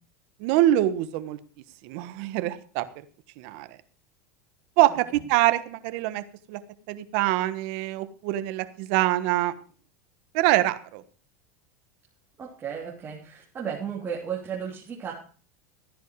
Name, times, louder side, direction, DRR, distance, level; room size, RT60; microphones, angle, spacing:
voice 1, 0.4-1.4 1.8-2.9 3.4-3.7 4.8-6.2 6.5-6.6 6.9-9.5 10.3-11.0, right 15 dB, 65° right, 12 dB, 1.3 m, -24 dB
voice 2, 12.4-15.1, right 7 dB, 30° right, -3 dB, 3.2 m, -34 dB
14.0 x 10.5 x 4.7 m, 0.41 s
supercardioid pair, 115°, 8 cm